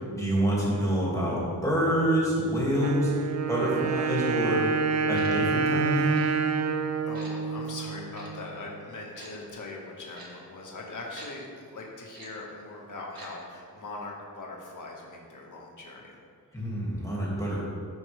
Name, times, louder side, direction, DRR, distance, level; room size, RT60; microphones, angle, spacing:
voice 1, 0.1-4.7 5.1-6.3 16.5-17.6, right 1 dB, 10° left, -6 dB, 2.3 m, -27 dB
Wind instrument woodwind instrument, 2.8-8.5, right 5 dB, 45° right, 0.5 m, -28 dB
Tick-tock, 5.1-5.3 6.1-6.3 7.1-7.3 8.1-8.3 9.2-9.3 10.1-10.3 11.2-11.3 12.1-12.3 13.1-13.3 13.6-13.7, right 3 dB, 70° right, 1.7 m, -46 dB
voice 2, 7.1-16.2, left 2 dB, 55° left, -2 dB, 1.7 m, -41 dB
13.5 x 5.2 x 3.4 m, 2.3 s
wide cardioid pair, 145°, 37 cm